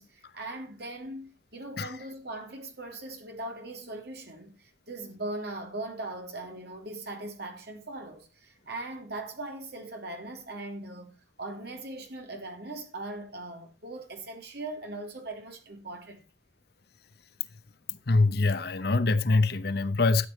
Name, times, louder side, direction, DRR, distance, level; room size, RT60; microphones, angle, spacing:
voice 1, 0.0-16.2, right 2 dB, 55° right, 3.2 m, -40 dB
voice 2, 17.9-20.3, left 3 dB, 55° left, 0.8 m, -24 dB
13.0 x 8.3 x 4.4 m
head